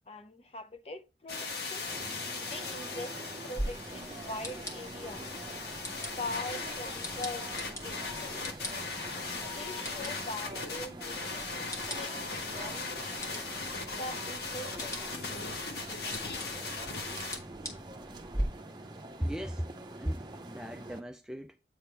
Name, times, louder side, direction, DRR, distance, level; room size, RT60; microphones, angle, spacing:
voice 1, 0.0-1.9 2.4-5.3 6.2-8.5 9.1-12.9 13.9-15.0, left 2 dB, 35° left, 0.6 m, -43 dB
sound 1, 1.3-17.4, left 4 dB, 65° left, 1.3 m, -39 dB
sound 2, 1.9-21.0, right 2 dB, 25° right, 0.7 m, -45 dB
sound 3, 3.6-18.4, equal, 20° left, 1.3 m, -43 dB
voice 2, 19.2-19.7 20.0-21.5, equal, 5° right, 0.3 m, -36 dB
8.5 x 3.5 x 4.5 m
head